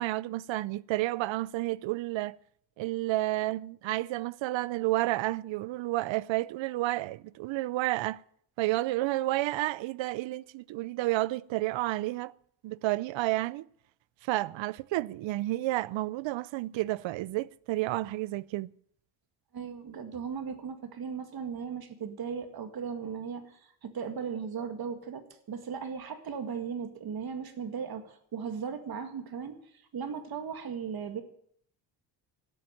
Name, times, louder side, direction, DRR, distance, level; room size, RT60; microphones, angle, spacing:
voice 1, 0.0-2.4 2.8-8.2 8.6-12.3 12.6-13.7 14.2-18.7, right 17 dB, 75° right, 0.6 m, -31 dB
voice 2, 19.5-29.6 29.9-31.2, right 6 dB, 50° right, 2.0 m, -37 dB
12.5 x 10.5 x 9.1 m
cardioid pair, 115°, 47 cm